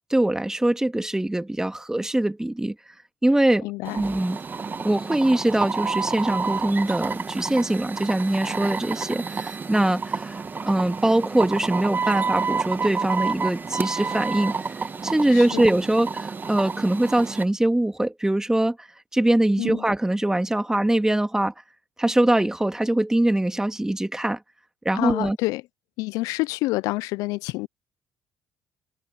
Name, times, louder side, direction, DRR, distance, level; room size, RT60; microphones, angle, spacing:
voice 1, 0.1-2.8 3.2-3.7 4.0-4.4 4.8-18.9 19.1-21.5 22.0-24.4 24.8-25.4, right 1 dB, 10° right, 2.2 m, -23 dB
voice 2, 3.6-4.0 15.3-15.7 19.6-19.8 25.0-25.6 26.0-27.7, left 21 dB, 80° left, 0.4 m, -27 dB
sound 1, 3.8-17.4, right 5 dB, 35° right, 1.4 m, -29 dB
supercardioid pair, 65°, 6 cm